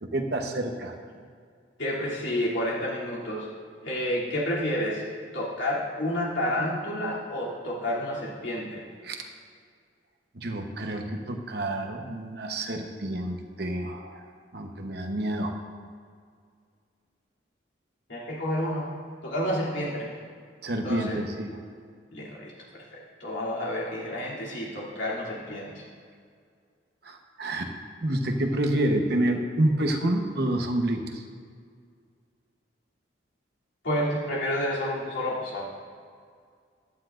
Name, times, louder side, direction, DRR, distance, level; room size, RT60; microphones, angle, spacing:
voice 1, 0.0-0.9 9.0-9.3 10.3-14.3 14.5-15.5 20.6-21.5 27.0-27.7 28.0-31.2, right 1 dB, 55° right, 3 dB, 1.0 m, -28 dB
voice 2, 1.8-3.5 3.8-5.0 5.3-8.8 18.1-18.9 19.2-20.1 20.8-21.2 22.1-25.9 33.8-35.7, left 1 dB, 80° left, -6 dB, 2.9 m, -30 dB
15.5 x 11.5 x 2.5 m, 2.1 s
head